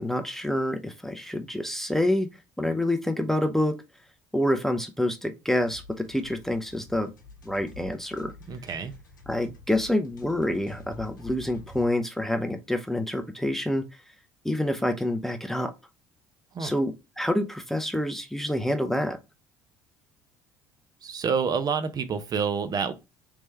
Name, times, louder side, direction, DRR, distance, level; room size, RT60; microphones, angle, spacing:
voice 1, 0.0-2.3 2.6-3.8 4.3-7.1 7.4-8.3 9.3-13.8 14.4-15.7 16.6-19.2, left 1 dB, 5° left, 0.6 m, -27 dB
sound 1, 5.6-11.9, left 3 dB, 85° left, 0.8 m, -47 dB
voice 2, 8.5-8.9 16.5-16.7 21.0-22.9, right 6 dB, 40° right, 0.6 m, -28 dB
3.3 x 3.2 x 3.1 m
hypercardioid pair, 60°, 10 cm